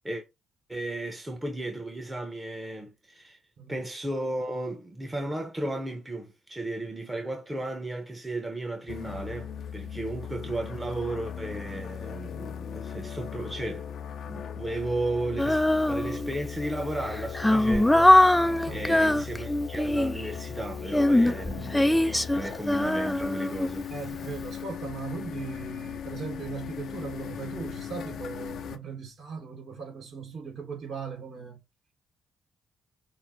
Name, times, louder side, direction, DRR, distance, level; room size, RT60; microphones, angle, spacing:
voice 1, 0.7-3.4 3.7-13.9 14.3-18.4 18.7-23.9, right 1 dB, 15° right, 0.9 m, -34 dB
sound 1, 8.9-28.8, left 8 dB, 65° left, 0.5 m, -38 dB
Female singing, 15.4-16.5 17.0-20.3 20.9-24.1, left 1 dB, 5° left, 0.4 m, -22 dB
voice 2, 18.6-19.3 21.3-21.8 23.9-31.6, right 6 dB, 60° right, 2.5 m, -39 dB
5.5 x 2.1 x 4.5 m
cardioid pair, 90°, 0 cm